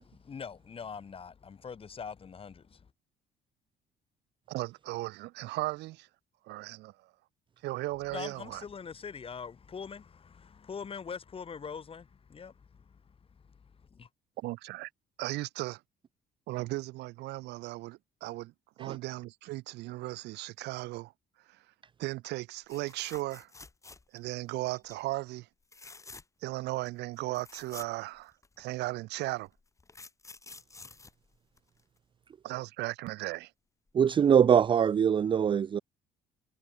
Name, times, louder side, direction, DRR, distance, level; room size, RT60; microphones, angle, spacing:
voice 1, 0.0-2.9 8.1-13.2 13.4-14.1, left 6 dB, 35° left, 3.4 m, -43 dB
voice 2, 4.5-6.1 6.4-7.1 7.6-8.6 14.4-14.9 15.2-15.8 16.5-18.5 18.8-21.1 21.5-21.6 22.0-23.5 24.1-25.5 26.4-29.5 32.4-33.5, right 19 dB, 85° right, 2.0 m, -36 dB
sound 1, 22.7-24.3 24.7-25.0 25.6-26.5 26.9-27.0 27.2-28.7 29.4-32.0 33.9-34.1 34.4-34.5, left 3 dB, 20° left, 2.5 m, -50 dB
voice 3, 33.9-35.8, right 8 dB, 30° right, 0.4 m, -23 dB
cardioid pair, 110°, 17 cm